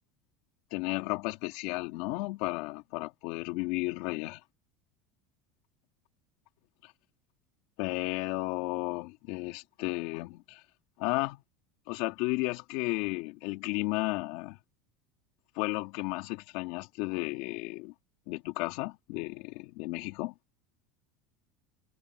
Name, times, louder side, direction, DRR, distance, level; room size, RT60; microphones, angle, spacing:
voice 1, 0.7-4.4 7.8-10.6 11.0-11.4 11.9-14.6 15.6-17.9 18.3-20.3, left 23 dB, 65° left, 2.7 m, -33 dB
supercardioid pair, 145°, 0 cm